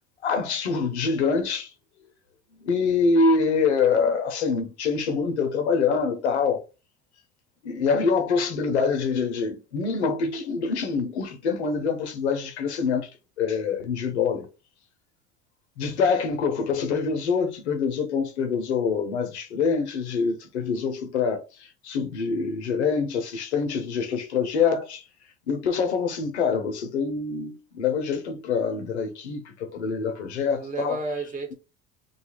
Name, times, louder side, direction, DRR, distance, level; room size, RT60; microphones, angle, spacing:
voice 1, 0.2-1.7 2.6-6.6 7.6-13.1 13.4-14.5 15.8-25.0 25.5-31.0, left 5 dB, 85° left, 0.8 m, -25 dB
voice 2, 15.8-16.1 30.6-31.5, right 3 dB, 25° right, 1.0 m, -32 dB
2.7 x 2.4 x 2.9 m
hypercardioid pair, 75°, 33 cm